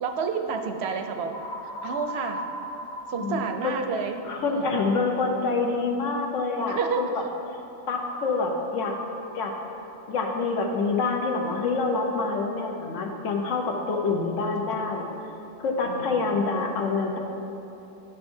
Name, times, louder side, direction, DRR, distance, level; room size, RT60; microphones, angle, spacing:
voice 1, 0.0-1.4 1.8-2.4 3.1-4.7 6.7-7.0 14.5-14.8 15.8-16.3, right 5 dB, 65° right, 5 dB, 0.7 m, -30 dB
sound 1, 1.3-5.2, equal, 50° left, 0.6 m, -38 dB
voice 2, 3.2-3.7 4.2-7.2 7.9-9.0 9.3-9.5 10.1-15.1 15.6-17.2, left 4 dB, 75° left, 1 dB, 1.1 m, -26 dB
11.0 x 5.7 x 2.6 m, 3.0 s
omnidirectional pair, 1.3 m